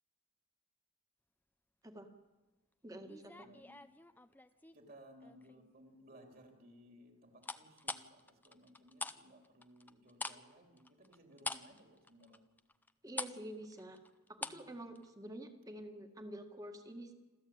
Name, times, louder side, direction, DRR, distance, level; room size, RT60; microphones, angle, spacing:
voice 1, 2.8-3.5 13.0-14.0 14.3-17.1, right 1 dB, 15° right, 5 dB, 1.9 m, -48 dB
sound 1, 3.0-4.8 5.2-5.7 7.4-9.2 9.4-14.7 15.0-15.1, left 3 dB, 10° left, 0.6 m, -44 dB
voice 2, 3.4-3.8 4.5-12.4 14.3-14.8, equal, 45° right, 3 dB, 3.6 m, -60 dB
27.0 x 13.5 x 8.9 m, 1.2 s
head